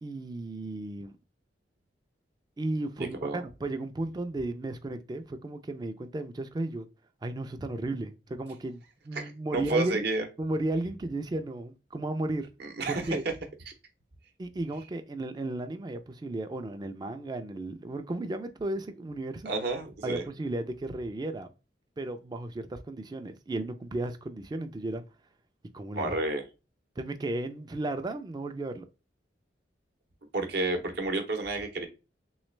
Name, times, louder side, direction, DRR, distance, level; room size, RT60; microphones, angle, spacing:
voice 1, 0.0-1.1 2.6-6.9 7.2-10.0 10.4-12.5 12.9-13.2 14.4-19.5 20.0-21.5 22.0-25.0 25.7-26.2 27.0-28.9, right 2 dB, 25° right, 0.3 m, -34 dB
voice 2, 9.1-10.3 12.6-13.3 13.7-13.8 19.4-20.2 25.9-26.4 30.3-31.9, right 2 dB, 65° right, 0.7 m, -30 dB
3.2 x 3.1 x 3.1 m
head